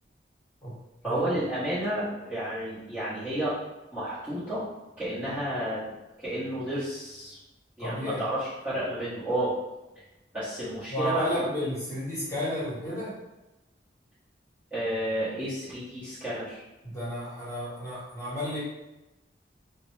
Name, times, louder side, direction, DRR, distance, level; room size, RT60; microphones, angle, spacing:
voice 1, 1.0-3.5 3.9-4.6 5.0-5.9 6.2-7.4 7.8-9.5 10.3-11.6 14.7-16.6, right 1 dB, 10° right, -14 dB, 0.9 m, -31 dB
voice 2, 7.8-8.2 10.9-13.1 16.8-18.6, left 1 dB, 20° left, -9 dB, 1.1 m, -32 dB
2.5 x 2.0 x 3.1 m, 1.0 s
head